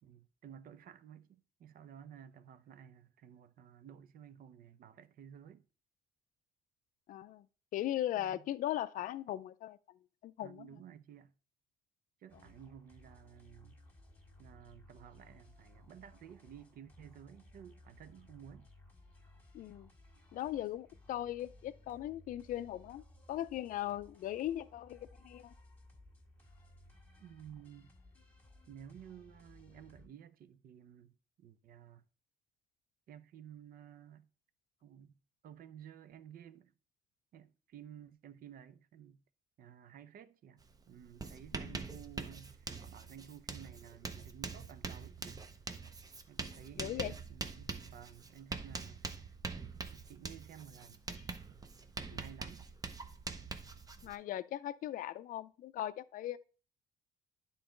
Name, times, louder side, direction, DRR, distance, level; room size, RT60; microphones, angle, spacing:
voice 1, 0.0-5.7 8.1-8.4 10.4-11.3 12.2-13.8 14.4-18.7 27.2-27.9 28.7-32.0 33.1-34.3 34.8-35.2 35.4-36.7 37.3-39.2 39.6-45.4 46.3-49.3 49.9-51.0 51.4-51.6 52.1-52.7, right 9 dB, 60° right, 0.6 m, -54 dB
voice 2, 7.1-7.5 7.7-9.8 10.2-10.7 19.5-19.9 20.3-25.5 41.5-41.8 46.8-47.1 52.1-52.2 54.0-56.4, left 13 dB, 55° left, 0.4 m, -39 dB
sound 1, 12.3-30.1, left 1 dB, 10° left, 1.8 m, -60 dB
Writing, 40.6-40.8 41.0-54.2, right 4 dB, 20° right, 0.6 m, -44 dB
10.0 x 3.9 x 3.8 m
cardioid pair, 110°, 17 cm